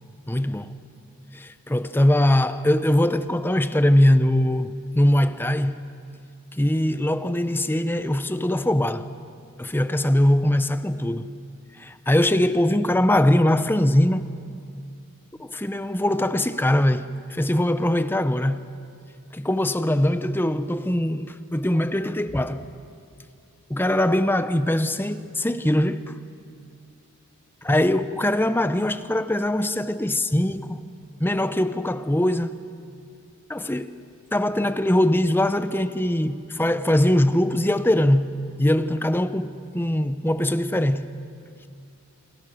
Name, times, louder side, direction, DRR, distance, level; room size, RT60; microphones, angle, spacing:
voice 1, 0.3-0.8 1.3-5.8 6.6-9.1 9.6-11.3 11.8-14.3 15.4-18.7 19.3-22.6 23.7-26.1 27.6-30.8 31.2-32.6 33.5-34.0 34.3-41.1, left 1 dB, 10° left, 0.7 m, -22 dB
30.0 x 27.0 x 6.3 m
head